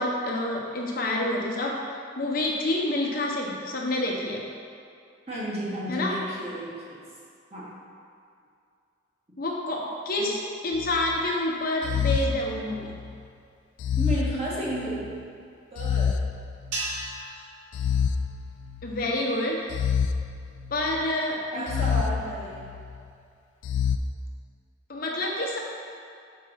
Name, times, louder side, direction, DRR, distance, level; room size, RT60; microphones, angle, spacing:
voice 1, 0.0-1.9 2.2-4.4 5.9-6.1 9.4-10.4 10.6-13.0 18.8-19.7 20.7-22.0 24.9-25.6, left 1 dB, 50° left, -1 dB, 1.0 m, -28 dB
voice 2, 5.3-7.0 7.5-7.7 10.2-10.3 14.0-15.1 15.7-16.2 21.5-22.7, right 1 dB, 35° right, -7 dB, 1.8 m, -32 dB
sound 1, 10.7-11.2 11.8-13.1 13.8-15.1 15.8-17.1 17.7-19.0 19.7-21.0 21.7-23.0 23.6-24.0, left 7 dB, 75° left, 0.4 m, -28 dB
sound 2, 16.7-19.2, right 2 dB, 90° right, 1.3 m, -37 dB
5.3 x 4.6 x 6.2 m, 2.4 s
head